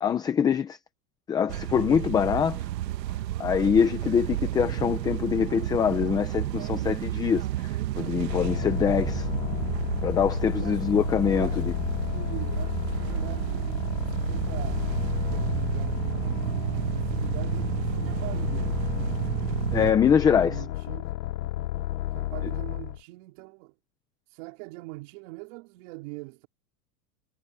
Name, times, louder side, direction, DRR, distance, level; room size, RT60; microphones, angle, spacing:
voice 1, 0.0-0.8 1.3-2.6 3.4-9.3 10.0-11.7 19.7-20.6, left 7 dB, 10° left, 0.5 m, -24 dB
sound 1, 1.5-19.9, right 14 dB, 75° right, 1.5 m, -31 dB
sound 2, 8.3-23.0, left 14 dB, 80° left, 2.4 m, -32 dB
voice 2, 10.5-16.4 16.8-19.0 20.1-21.1 22.1-23.7 24.3-26.5, right 25 dB, 45° right, 4.6 m, -43 dB
supercardioid pair, 160°, 50 cm